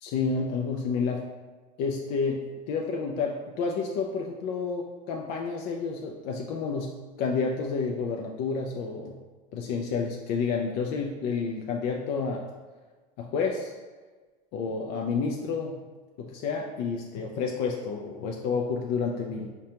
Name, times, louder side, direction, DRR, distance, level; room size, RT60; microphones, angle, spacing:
voice 1, 0.0-1.2 1.8-6.9 7.2-9.2 9.5-12.5 13.2-13.7 14.5-15.8 16.2-19.5, left 5 dB, 50° left, 0 dB, 0.4 m, -30 dB
4.8 x 2.2 x 2.8 m, 1.3 s
supercardioid pair, 135°, 20 cm